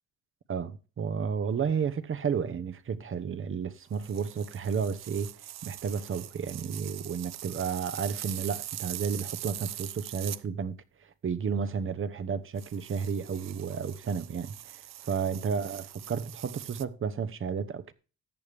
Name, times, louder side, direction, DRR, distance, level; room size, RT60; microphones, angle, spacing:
voice 1, 0.5-5.3 5.6-17.9, right 6 dB, 45° right, 1.0 m, -32 dB
sound 1, 3.9-10.4 12.6-16.8, right 13 dB, 60° right, 0.6 m, -42 dB
14.0 x 8.4 x 3.4 m
cardioid pair, 90°, 30 cm